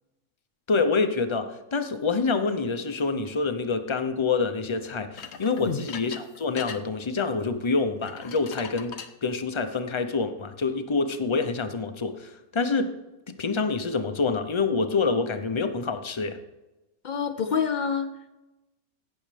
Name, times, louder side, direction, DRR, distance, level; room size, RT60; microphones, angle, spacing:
voice 1, 0.7-12.9 13.4-16.4, left 4 dB, 30° left, 8 dB, 0.5 m, -27 dB
sound 1, 5.2-6.8 8.0-9.1, left 6 dB, 55° left, 0.9 m, -40 dB
voice 2, 17.0-18.3, left 6 dB, 85° left, 7 dB, 0.4 m, -27 dB
17.0 x 6.4 x 3.3 m, 1.0 s
omnidirectional pair, 1.5 m